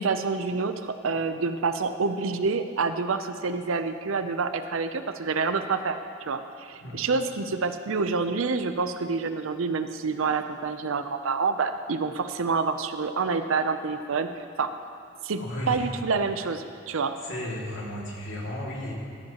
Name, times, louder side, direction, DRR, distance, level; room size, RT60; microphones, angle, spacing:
voice 1, 0.0-6.0 6.3-14.3 14.6-14.7 15.2-15.4 15.7-17.1, right 4 dB, 75° right, 9 dB, 0.6 m, -27 dB
voice 2, 15.4-15.9 17.2-18.9, left 1 dB, 65° left, -4 dB, 2.4 m, -34 dB
15.0 x 10.5 x 3.0 m, 2.5 s
head